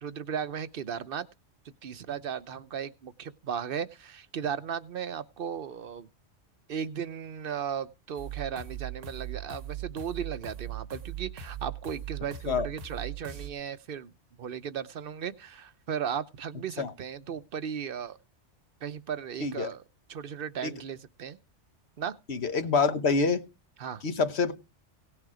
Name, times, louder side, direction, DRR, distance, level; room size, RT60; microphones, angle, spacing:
voice 1, 0.0-1.3 1.6-6.1 6.7-14.1 14.4-18.2 18.8-19.8 20.1-21.4 22.0-22.2 23.8-24.0, right 8 dB, 55° right, 0.9 m, -36 dB
sound 1, 8.2-13.5, right 10 dB, 90° right, 1.5 m, -39 dB
voice 2, 22.3-23.4 24.0-24.5, left 4 dB, 65° left, 1.3 m, -26 dB
17.5 x 6.5 x 4.9 m
omnidirectional pair, 1.2 m